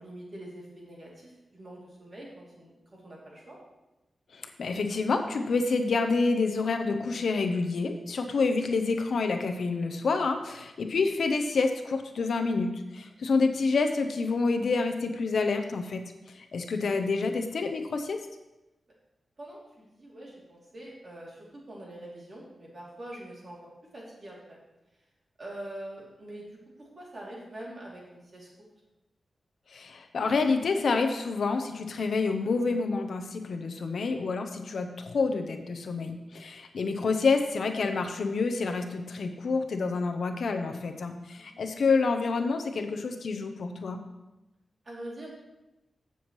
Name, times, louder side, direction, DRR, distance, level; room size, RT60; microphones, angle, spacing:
voice 1, 0.0-2.7 3.0-3.6 19.4-24.6 25.4-26.4 26.8-28.5 41.3-41.6 44.8-45.3, right 1 dB, 35° right, -4 dB, 2.9 m, -44 dB
voice 2, 4.3-16.0 16.3-18.2 29.7-44.0, left 4 dB, 65° left, 5 dB, 0.8 m, -28 dB
14.5 x 7.0 x 3.2 m, 0.99 s
wide cardioid pair, 165°, 0 cm